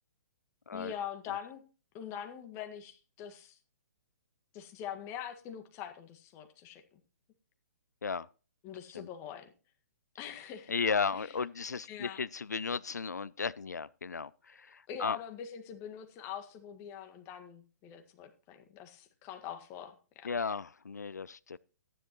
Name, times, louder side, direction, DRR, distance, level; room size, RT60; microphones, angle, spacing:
voice 1, 0.7-1.6 1.9-3.6 4.5-7.0 8.6-9.5 10.2-10.7 11.1-11.3 11.9-12.2 14.9-20.3, left 9 dB, 30° left, 1.7 m, -43 dB
voice 2, 10.7-15.2 20.2-21.6, left 5 dB, 85° left, 0.4 m, -35 dB
15.0 x 10.0 x 3.0 m
figure-of-eight pair, 125°, 9 cm